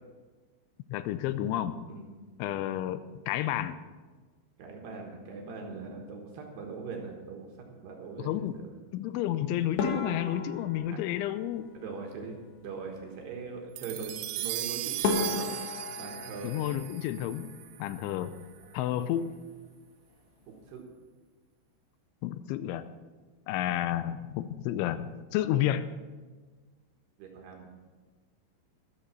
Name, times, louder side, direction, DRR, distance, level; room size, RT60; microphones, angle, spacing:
voice 1, 0.9-1.8 2.4-3.8 8.2-8.6 8.9-11.7 16.4-17.5 17.8-18.4 18.7-19.4 22.2-22.8 23.5-26.0, left 12 dB, 85° left, 12 dB, 2.8 m, -31 dB
voice 2, 4.6-8.7 10.9-11.0 11.7-15.5 16.0-16.5 20.5-20.8 27.2-27.7, right 4 dB, 65° right, 1 dB, 3.1 m, -41 dB
sound 1, 9.8-12.2 14.5-14.6 15.0-17.8 18.1-18.8 19.1-19.3 19.7-19.8 20.4-20.7, left 5 dB, 65° left, 3.3 m, -35 dB
sound 2, 13.8-18.3, right 16 dB, 90° right, 3.2 m, -37 dB
13.0 x 12.5 x 4.4 m, 1.4 s
omnidirectional pair, 5.7 m